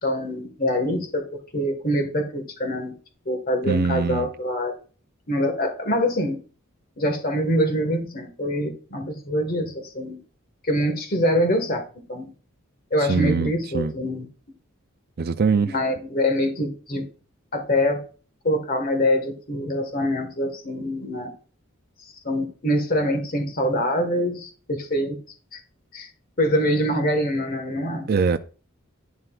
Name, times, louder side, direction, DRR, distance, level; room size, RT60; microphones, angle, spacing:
voice 1, 0.0-2.9 3.2-4.7 5.3-6.4 7.0-10.2 10.7-11.8 12.1-12.3 12.9-14.3 15.7-17.1 17.5-18.0 18.4-21.3 22.2-25.2 25.5-25.6 25.9-26.1 26.4-28.1, equal, 45° left, 1.6 m, -24 dB
voice 2, 3.7-4.3 13.0-13.9 15.2-15.7 28.1-28.4, right 5 dB, 50° right, 0.4 m, -22 dB
11.0 x 9.2 x 2.4 m
head